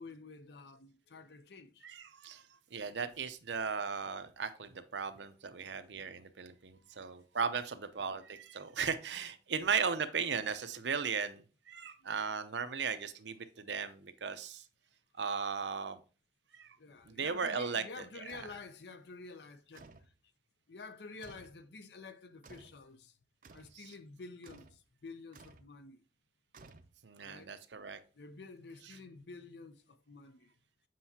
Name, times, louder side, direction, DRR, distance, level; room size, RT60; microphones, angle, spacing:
voice 1, 0.0-1.9 16.8-19.9 20.7-23.1 23.5-26.0 27.2-27.5 28.2-30.5, left 4 dB, 75° left, 0.6 m, -50 dB
voice 2, 1.8-2.4 2.7-14.6 15.2-16.0 16.5-16.8 17.0-17.8 23.7-23.9 27.0-28.0, right 6 dB, 85° right, 0.7 m, -37 dB
sound 1, 18.3-18.6 19.7-20.1 21.2-21.6 22.4-22.8 23.4-23.8 24.4-24.8 25.3-25.7 26.5-27.2, right 3 dB, 50° right, 0.5 m, -56 dB
7.6 x 5.4 x 2.8 m
head